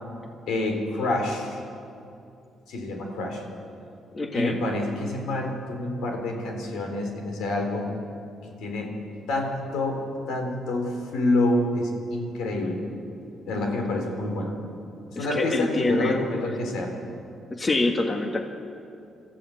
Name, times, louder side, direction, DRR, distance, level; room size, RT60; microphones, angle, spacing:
voice 1, 0.5-1.6 2.7-3.4 4.3-8.0 8.6-9.0 9.3-12.8 13.5-14.5 15.1-16.9, left 2 dB, 85° left, 3 dB, 3.9 m, -27 dB
voice 2, 4.1-4.6 15.1-16.3 17.5-18.4, left 2 dB, 30° left, 3 dB, 1.8 m, -25 dB
26.0 x 14.5 x 7.8 m, 2.6 s
cardioid pair, 90°, 0 cm